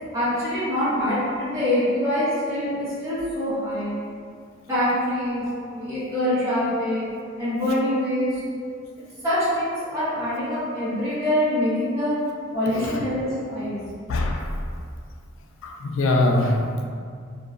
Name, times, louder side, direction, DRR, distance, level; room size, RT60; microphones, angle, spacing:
voice 1, 0.1-3.9 4.7-7.0 7.4-8.3 9.2-12.1 12.5-13.8, left 1 dB, 15° right, -14 dB, 0.9 m, -24 dB
voice 2, 12.7-13.0 14.1-14.5 15.6-16.8, left 2 dB, 85° left, 2 dB, 0.3 m, -23 dB
2.7 x 2.2 x 2.4 m, 2.2 s
head